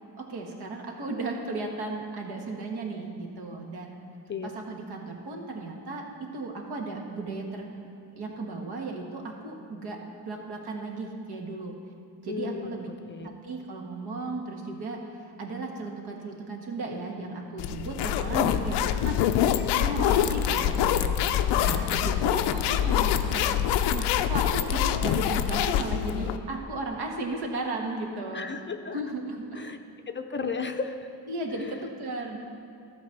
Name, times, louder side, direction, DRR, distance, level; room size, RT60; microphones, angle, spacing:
voice 1, 0.2-4.0 4.4-7.7 8.2-11.8 12.2-12.9 13.2-19.2 19.8-21.1 21.5-23.5 23.9-28.5 28.9-29.6 31.3-32.4, right 2 dB, 70° right, 1 dB, 1.6 m, -35 dB
voice 2, 12.3-13.3 28.3-29.0 29.5-29.8 30.1-31.1 31.5-31.8, left 5 dB, 30° left, 6 dB, 0.6 m, -34 dB
sound 1, 17.6-26.4, left 10 dB, 85° left, 0.5 m, -25 dB
12.0 x 4.1 x 7.3 m, 2.6 s
supercardioid pair, 75°, 41 cm